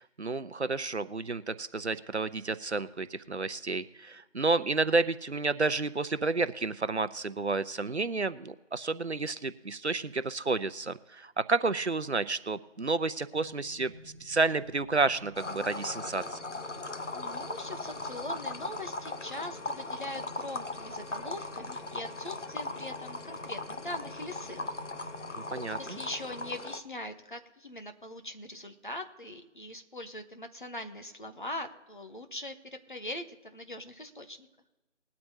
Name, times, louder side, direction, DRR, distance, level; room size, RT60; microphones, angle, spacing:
voice 1, 0.0-13.9 14.2-16.4 25.4-26.0, right 3 dB, 60° right, 13 dB, 0.7 m, -30 dB
sound 1, 13.3-26.6, equal, 15° right, 3.4 m, -51 dB
sound 2, 15.3-26.8, left 2 dB, 70° left, 1.0 m, -39 dB
voice 2, 17.1-24.7 25.5-34.5, left 1 dB, 40° left, 6 dB, 1.1 m, -42 dB
21.0 x 8.6 x 2.8 m, 1.1 s
figure-of-eight pair, 165°, 38 cm